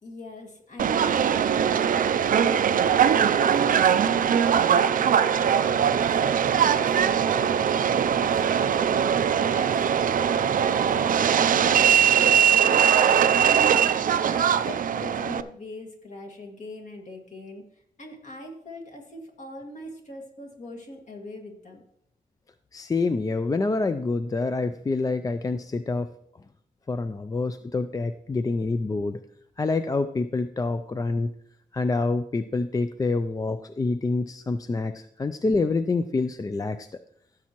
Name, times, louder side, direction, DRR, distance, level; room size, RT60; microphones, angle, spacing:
voice 1, 0.0-13.8 14.3-17.6 18.0-21.8, left 2 dB, 50° left, 2 dB, 2.0 m, -42 dB
Subway metro underground, 0.8-15.4, right 8 dB, 60° right, 0.4 m, -21 dB
voice 2, 22.7-26.1 26.9-29.2 29.6-31.3 31.7-36.9, left 3 dB, 25° left, 10 dB, 0.4 m, -27 dB
15.0 x 7.1 x 3.0 m, 0.70 s
wide cardioid pair, 125°, 16 cm